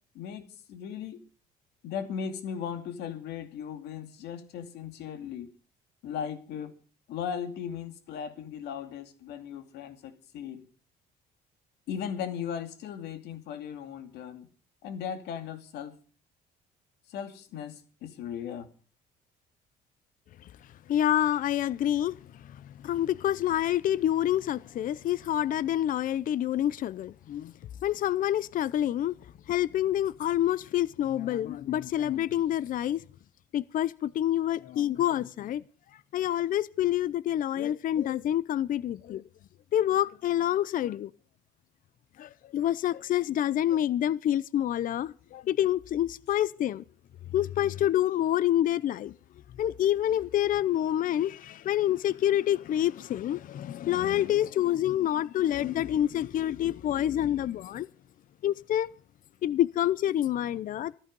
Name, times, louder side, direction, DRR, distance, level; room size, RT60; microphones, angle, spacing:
voice 1, 0.1-1.2 1.8-5.5 6.0-6.8 7.1-10.7 11.9-14.5 14.8-15.9 17.1-18.7, left 8 dB, 80° left, 2.5 m, -37 dB
voice 2, 20.9-22.2 22.4-27.5 27.8-29.2 29.5-33.0 33.5-35.6 36.1-39.2 39.7-41.1 42.2-46.8 47.3-49.1 49.6-57.9 58.4-58.9 59.4-61.0, left 12 dB, 55° left, 0.6 m, -27 dB
14.5 x 14.0 x 5.4 m
cardioid pair, 110°, 17 cm